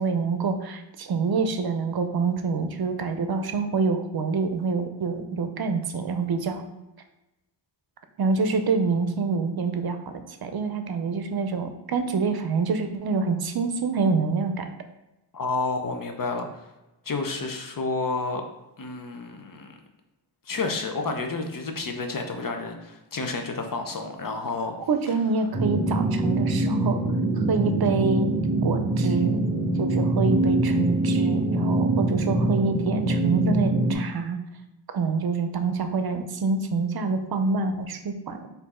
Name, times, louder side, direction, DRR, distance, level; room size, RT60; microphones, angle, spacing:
voice 1, 0.0-6.6 8.2-14.7 24.9-27.0 27.5-28.3 28.6-29.4 29.8-34.4 34.9-38.5, right 4 dB, 60° right, 7 dB, 0.6 m, -26 dB
voice 2, 15.3-16.7 17.0-18.4 18.8-19.8 20.5-24.7, left 3 dB, 50° left, 5 dB, 0.7 m, -30 dB
sound 1, 25.5-33.9, right 2 dB, 5° right, 0.8 m, -24 dB
4.3 x 2.7 x 4.3 m, 0.97 s
cardioid pair, 65°, 43 cm